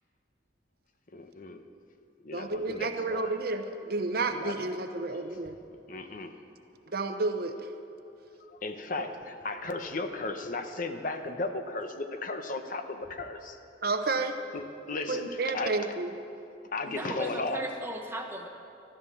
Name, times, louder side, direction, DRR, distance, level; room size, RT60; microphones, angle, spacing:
voice 1, 1.1-1.6 2.2-3.3 4.3-4.6 5.9-6.3 8.5-13.6 14.5-15.9 16.7-17.6, left 3 dB, 50° left, 0.9 m, -35 dB
voice 2, 2.3-5.6 6.9-7.7 9.0-9.1 13.8-14.4 15.1-16.1, right 3 dB, 55° right, 0.8 m, -31 dB
voice 3, 16.9-18.5, right 1 dB, 15° right, 1.3 m, -37 dB
13.5 x 13.0 x 7.1 m
head